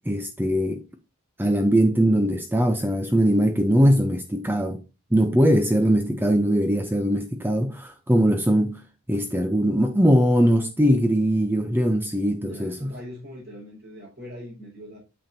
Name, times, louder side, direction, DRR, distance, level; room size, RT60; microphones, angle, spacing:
voice 1, 0.1-0.8 1.4-4.8 5.1-8.8 9.1-12.9, equal, 10° right, 0.7 m, -21 dB
voice 2, 12.4-15.0, equal, 45° right, 4.6 m, -41 dB
9.0 x 7.0 x 2.8 m
head